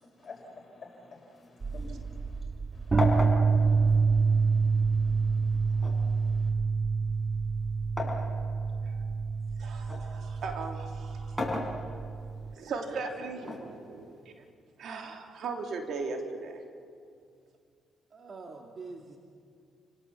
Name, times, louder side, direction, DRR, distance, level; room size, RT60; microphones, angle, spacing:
voice 1, 0.2-2.4 2.7-3.2 3.5-6.5, left 3 dB, 45° left, 0 dB, 5.4 m, -52 dB
sound 1, 1.3-2.6 3.0-4.9 5.8-8.3 8.8-10.1 11.1-12.3 13.4-14.4, left 2 dB, 5° left, 5.5 m, -36 dB
sound 2, 1.6-12.5, right 4 dB, 30° right, 0.7 m, -27 dB
voice 2, 8.7-9.0 9.6-11.4 12.5-14.1 14.8-16.6, right 4 dB, 65° right, 3 dB, 3.3 m, -38 dB
voice 3, 13.5-14.0 14.9-15.2 18.1-19.2, right 3 dB, 45° right, 2 dB, 2.5 m, -47 dB
29.5 x 17.5 x 7.2 m, 2.3 s
supercardioid pair, 70°, 0 cm